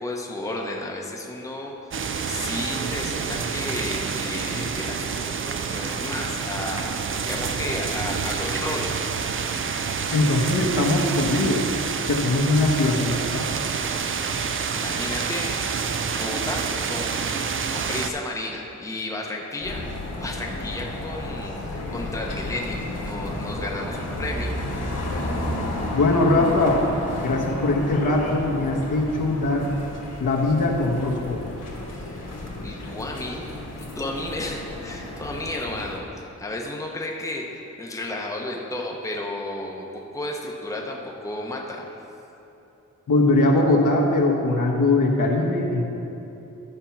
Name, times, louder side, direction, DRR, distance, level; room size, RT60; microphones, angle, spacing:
voice 1, 0.0-8.9 14.7-15.5 16.1-19.8 20.2-24.6 31.9-32.2 32.6-33.4 33.8-41.9, left 1 dB, 10° left, -1 dB, 0.8 m, -33 dB
sound 1, 1.9-18.1, right 6 dB, 40° right, 0.4 m, -28 dB
voice 2, 10.1-11.6 12.1-13.5 25.9-26.8 27.2-29.7 30.2-31.5 43.1-45.8, left 2 dB, 75° left, -1 dB, 1.2 m, -21 dB
sound 2, 19.6-36.0, left 1 dB, 55° left, 1.4 m, -32 dB
12.5 x 4.4 x 5.8 m, 2.9 s
wide cardioid pair, 160°, 31 cm